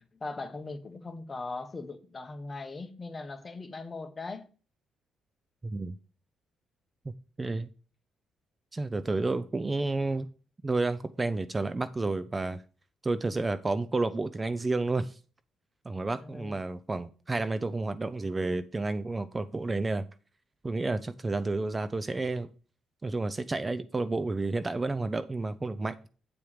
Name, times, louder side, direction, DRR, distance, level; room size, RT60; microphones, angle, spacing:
voice 1, 0.0-4.5 16.2-16.6, left 3 dB, 25° left, 1.2 m, -40 dB
voice 2, 5.6-6.0 7.4-7.7 8.7-10.3 10.6-12.6 13.0-15.2 15.8-20.1 20.6-22.5 23.0-26.1, right 3 dB, 25° right, 0.5 m, -30 dB
8.7 x 4.6 x 5.0 m
cardioid pair, 90°, 0 cm